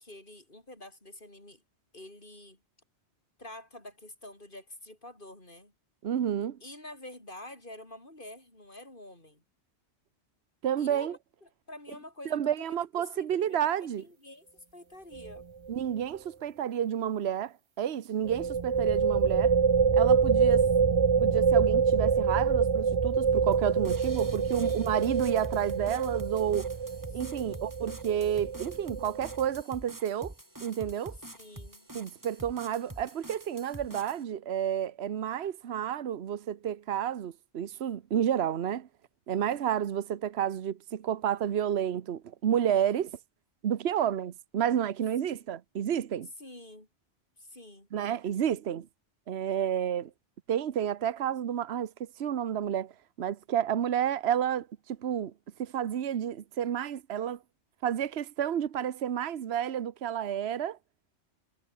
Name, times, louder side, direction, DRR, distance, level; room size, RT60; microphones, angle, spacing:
voice 1, 0.0-1.6 1.9-2.6 3.4-5.7 6.6-9.4 10.8-14.5 14.7-15.5 24.1-24.9 27.1-27.7 31.3-31.9 45.2-45.5 46.4-46.9 47.4-47.9, left 1 dB, 50° left, 6.0 m, -48 dB
voice 2, 6.0-6.6 10.6-11.1 12.2-14.0 15.7-19.5 19.9-20.7 21.2-26.7 27.1-30.3 30.6-31.2 31.9-38.9 39.3-43.1 43.6-46.3 47.9-48.9 49.3-50.1 50.5-52.9 53.2-55.3 55.6-57.4 57.8-60.8, right 9 dB, 70° right, 1.1 m, -30 dB
sound 1, 15.1-15.4 15.7-15.8 18.2-29.6, right 6 dB, 35° right, 0.5 m, -26 dB
sound 2, 23.5-34.2, right 1 dB, 15° right, 2.7 m, -47 dB
omnidirectional pair, 1.1 m